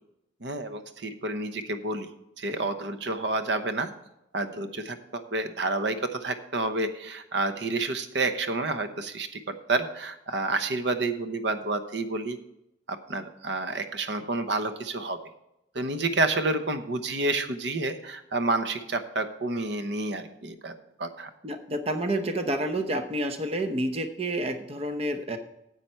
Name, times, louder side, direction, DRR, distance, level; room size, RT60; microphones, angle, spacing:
voice 1, 0.4-2.1 2.4-3.9 4.3-12.4 12.9-15.2 15.7-20.7 21.0-21.3, right 2 dB, 80° right, 8 dB, 1.0 m, -29 dB
voice 2, 21.4-25.4, right 1 dB, 35° right, 7 dB, 0.8 m, -29 dB
9.9 x 8.2 x 4.5 m, 0.82 s
head